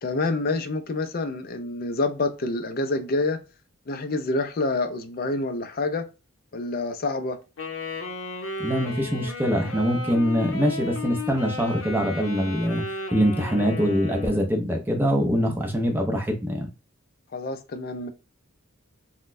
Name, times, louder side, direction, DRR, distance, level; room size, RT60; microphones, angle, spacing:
voice 1, 0.0-3.4 3.9-6.0 6.5-7.4 17.3-18.1, left 2 dB, 45° left, 0.5 m, -27 dB
Wind instrument woodwind instrument, 7.6-14.5, left 3 dB, 75° left, 0.8 m, -34 dB
voice 2, 8.6-12.8 13.1-16.7, equal, 10° right, 0.6 m, -24 dB
3.9 x 2.2 x 2.5 m
head